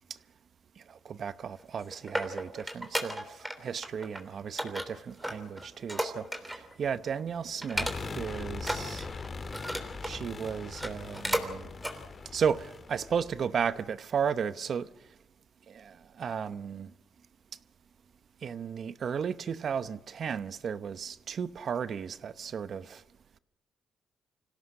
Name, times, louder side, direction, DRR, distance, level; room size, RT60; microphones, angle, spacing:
voice 1, 1.1-3.2 3.6-6.2 6.8-7.9 8.1-9.0 10.0-11.6 12.3-14.9 16.2-16.9 18.4-23.0, right 7 dB, 55° right, 0.8 m, -34 dB
sound 1, 1.6-3.6 3.8-4.2 4.6-6.7 7.1-7.2 7.6-8.3 8.6-10.2 10.7-11.5 11.8-12.0 12.5-12.6, equal, 5° right, 3.1 m, -34 dB
sound 2, 7.7-13.8, left 4 dB, 35° left, 2.0 m, -41 dB
25.5 x 17.0 x 6.5 m
cardioid pair, 90°, 0 cm